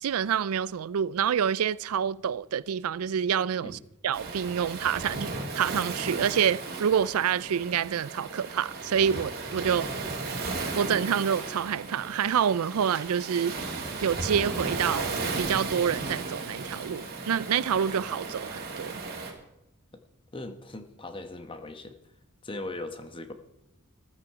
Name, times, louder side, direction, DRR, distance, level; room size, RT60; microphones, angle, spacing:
voice 1, 0.0-3.8 4.0-9.9 10.7-13.5 14.0-19.0, right 8 dB, 85° right, 0.4 m, -27 dB
Waves surf, 4.1-19.3, right 3 dB, 45° right, 2.6 m, -35 dB
voice 2, 20.3-22.0 22.4-23.3, left 2 dB, 25° left, 1.1 m, -39 dB
13.5 x 13.5 x 4.9 m
head